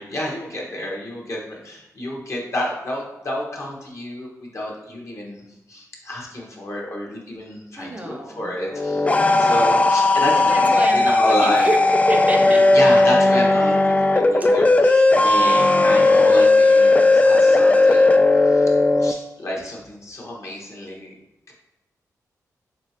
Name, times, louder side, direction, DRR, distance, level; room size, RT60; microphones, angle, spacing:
voice 1, 0.0-5.4 5.7-9.1 9.4-11.6 12.7-18.2 18.4-18.7 19.0-21.2 21.5-21.6, left 1 dB, 45° left, -2 dB, 1.2 m, -29 dB
voice 2, 7.8-8.5 10.4-12.7 14.4-14.5, right 1 dB, 25° right, 3 dB, 0.6 m, -27 dB
sound 1, 8.7-19.1, left 2 dB, 20° left, 0.3 m, -16 dB
4.3 x 3.2 x 2.8 m, 0.97 s
cardioid pair, 60°, 7 cm